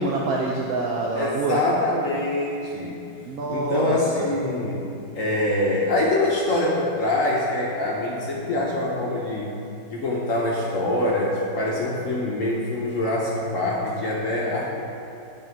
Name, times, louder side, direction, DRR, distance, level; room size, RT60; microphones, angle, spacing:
voice 1, 0.0-1.6 3.3-4.3, right 3 dB, 70° right, -3 dB, 0.8 m, -26 dB
voice 2, 1.1-3.0 3.5-4.9 5.1-9.5 9.9-14.8, left 1 dB, 60° left, -4 dB, 0.8 m, -24 dB
9.5 x 3.4 x 4.4 m, 2.7 s
omnidirectional pair, 2.1 m